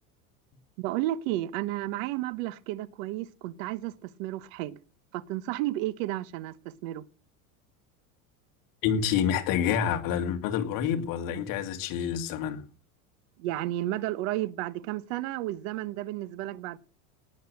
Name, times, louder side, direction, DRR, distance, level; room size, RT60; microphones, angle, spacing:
voice 1, 0.8-4.8 5.1-7.0 13.4-16.8, right 15 dB, 70° right, 1.2 m, -32 dB
voice 2, 8.8-12.7, left 8 dB, 55° left, 2.1 m, -28 dB
19.0 x 6.7 x 6.5 m
supercardioid pair, 130°, 41 cm